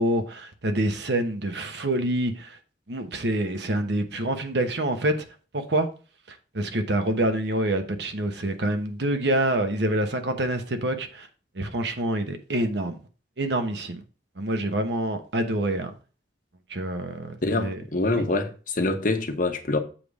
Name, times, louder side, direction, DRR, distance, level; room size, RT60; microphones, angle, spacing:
voice 1, 0.0-2.6 2.9-5.3 5.5-5.9 6.3-11.3 11.5-13.0 13.4-14.0 14.4-15.9 16.7-17.8 18.1-18.3, right 1 dB, 65° right, 1.0 m, -26 dB
voice 2, 17.4-19.8, left 2 dB, 50° left, 1.0 m, -25 dB
7.6 x 3.5 x 6.2 m
head